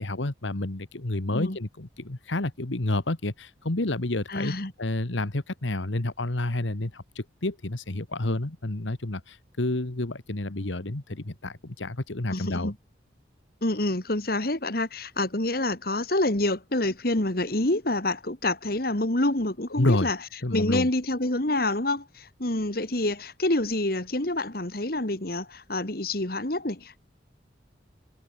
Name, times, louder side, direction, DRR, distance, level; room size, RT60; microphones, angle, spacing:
voice 1, 0.0-4.5 4.8-12.7 19.7-20.1 20.4-20.9, left 2 dB, 85° left, 1.6 m, -29 dB
voice 2, 4.3-4.7 12.3-12.7 13.6-20.2 20.5-27.0, left 1 dB, 50° left, 2.1 m, -27 dB
head